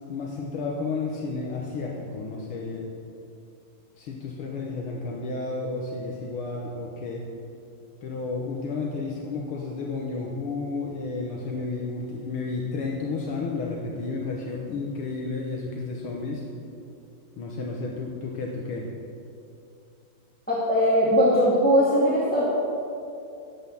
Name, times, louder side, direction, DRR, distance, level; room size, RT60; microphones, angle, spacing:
voice 1, 0.1-2.9 4.0-7.2 8.0-16.4 17.4-18.9, left 3 dB, 75° left, -1 dB, 2.0 m, -32 dB
voice 2, 20.5-22.5, equal, 5° left, -7 dB, 1.5 m, -20 dB
12.0 x 8.3 x 7.0 m, 2.6 s
omnidirectional pair, 2.4 m